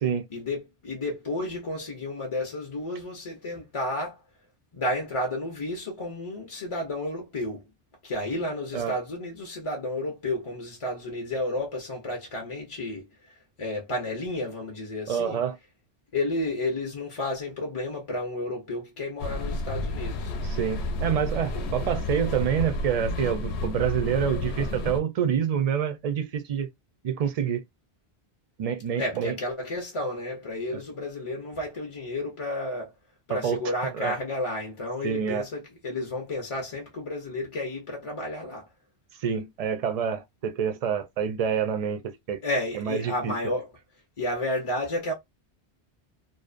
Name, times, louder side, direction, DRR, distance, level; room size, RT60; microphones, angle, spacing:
voice 1, 0.3-4.2 4.7-7.6 8.0-13.1 13.6-15.4 16.1-20.3 21.5-21.6 29.0-32.9 33.3-38.7 42.4-43.7 44.2-45.1, left 1 dB, 40° left, 0.5 m, -31 dB
voice 2, 15.1-15.6 20.4-26.7 27.0-27.6 28.6-29.4 33.3-33.6 33.9-34.2 35.0-35.5 39.2-42.4 42.7-43.4, right 8 dB, 55° right, 0.4 m, -27 dB
sound 1, 19.2-25.0, left 2 dB, 85° left, 0.8 m, -31 dB
2.6 x 2.1 x 2.4 m
omnidirectional pair, 1.1 m